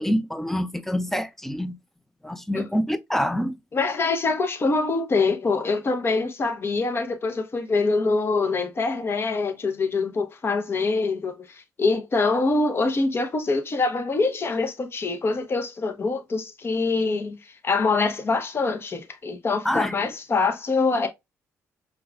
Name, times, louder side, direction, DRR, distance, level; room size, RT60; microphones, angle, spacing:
voice 1, 0.0-1.7 2.2-3.6 19.6-20.0, equal, 5° left, 0.4 m, -26 dB
voice 2, 3.7-17.4 17.6-21.1, left 3 dB, 40° left, 0.8 m, -24 dB
4.8 x 2.4 x 2.3 m
supercardioid pair, 70°, 6 cm